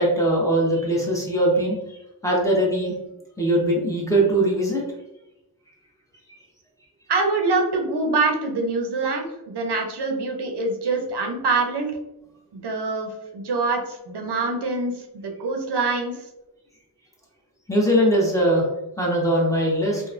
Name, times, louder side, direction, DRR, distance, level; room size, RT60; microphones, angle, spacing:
voice 1, 0.0-2.0 2.2-2.9 3.4-4.8 17.7-18.7 19.0-20.0, right 1 dB, 10° left, -3 dB, 0.8 m, -21 dB
voice 2, 7.1-11.9 12.5-16.3, right 3 dB, 85° right, 3 dB, 0.6 m, -25 dB
2.9 x 2.1 x 2.4 m, 0.92 s
wide cardioid pair, 70°, 39 cm